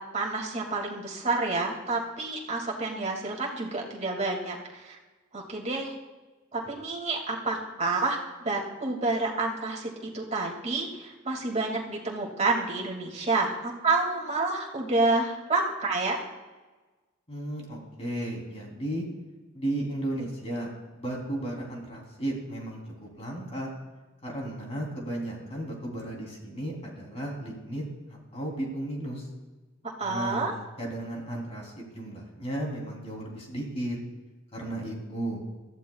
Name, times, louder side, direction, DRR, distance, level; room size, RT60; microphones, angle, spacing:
voice 1, 0.1-5.0 5.3-5.9 6.5-16.3 30.0-30.5, right 3 dB, 35° right, -2 dB, 2.3 m, -29 dB
voice 2, 17.3-19.0 19.5-20.7 21.0-23.7 24.2-27.8 28.1-29.3 30.0-34.0 34.5-35.4, right 1 dB, 30° left, -1 dB, 3.4 m, -34 dB
21.5 x 14.0 x 2.4 m, 1.2 s
head